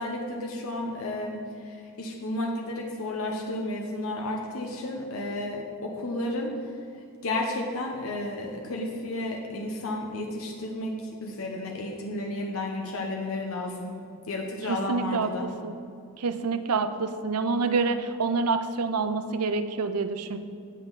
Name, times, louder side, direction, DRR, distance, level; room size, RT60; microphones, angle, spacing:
voice 1, 0.0-1.4 1.6-6.5 7.2-10.9 11.2-13.9 14.3-15.5, left 2 dB, 65° left, 1 dB, 1.1 m, -32 dB
voice 2, 14.7-15.7 16.2-20.4, right 4 dB, 90° right, 10 dB, 0.7 m, -27 dB
17.0 x 6.3 x 4.1 m, 2.4 s
head